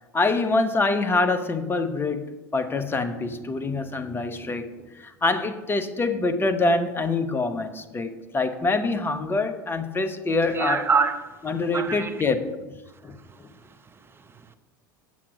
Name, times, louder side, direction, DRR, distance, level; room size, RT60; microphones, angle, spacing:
voice 1, 0.1-2.3 2.5-4.7 4.9-10.8 11.4-13.5, left 3 dB, 20° left, 1.1 m, -25 dB
voice 2, 10.5-11.4 11.7-12.2 13.1-14.5, right 5 dB, 20° right, 0.8 m, -28 dB
8.6 x 7.4 x 6.0 m
hypercardioid pair, 80°, 11 cm